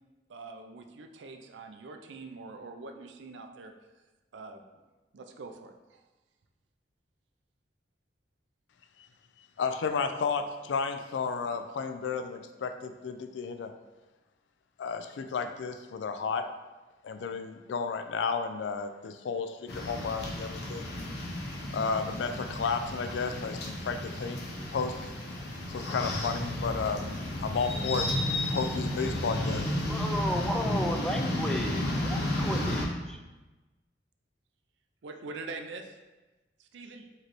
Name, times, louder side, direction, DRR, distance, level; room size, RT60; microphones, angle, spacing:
voice 1, 0.3-3.7 4.3-4.8 5.1-6.0 35.0-36.0 36.6-37.1, right 3 dB, 85° right, 5 dB, 0.4 m, -44 dB
voice 2, 9.6-13.7 14.8-16.5 17.0-20.9 21.7-24.4 24.7-25.0 25.7-27.0 27.4-28.1 28.5-29.8, left 5 dB, 85° left, 8 dB, 0.4 m, -32 dB
sound 1, 19.7-32.8, left 1 dB, 65° left, 0.7 m, -32 dB
voice 3, 29.8-33.2, equal, 5° left, 3 dB, 0.3 m, -34 dB
4.8 x 3.2 x 3.0 m, 1.2 s
head